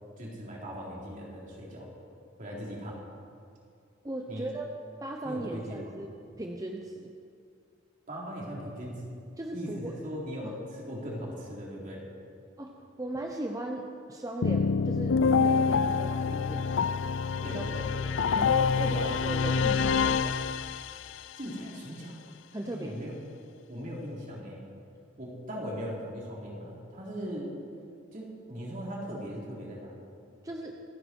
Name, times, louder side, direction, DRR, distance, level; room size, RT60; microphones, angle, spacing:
voice 1, 0.2-1.9 2.4-3.0 4.3-4.5 5.2-5.9 8.1-9.2 9.5-12.0 17.4-17.9 18.7-19.1 21.4-22.2 22.7-23.2 23.7-24.6 25.2-27.5 28.1-30.0, equal, 45° right, -4 dB, 4.0 m, -39 dB
voice 2, 4.0-4.7 5.0-7.1 9.4-9.9 10.4-10.6 12.6-12.7 13.0-16.8 17.4-17.6 18.4-20.4 22.5-22.9 30.4-30.8, right 1 dB, 20° right, 1 dB, 0.9 m, -37 dB
sound 1, 14.4-21.2, left 5 dB, 75° left, 0.5 m, -26 dB
27.0 x 9.8 x 4.7 m, 2.3 s
head